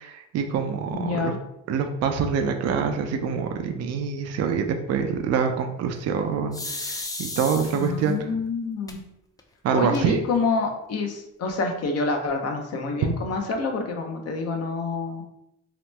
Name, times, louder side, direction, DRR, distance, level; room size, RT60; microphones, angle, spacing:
voice 1, 0.0-1.3 1.7-8.2 9.6-10.2, right 6 dB, 55° right, 5 dB, 0.4 m, -25 dB
voice 2, 0.9-1.4 7.7-9.0 9.7-15.2, left 4 dB, 55° left, 4 dB, 0.6 m, -27 dB
sound 1, 6.5-8.1 8.9-9.0 9.4-9.5 9.7-10.3, left 2 dB, 10° left, 0.3 m, -34 dB
2.9 x 2.0 x 3.2 m, 0.81 s
cardioid pair, 90°, 30 cm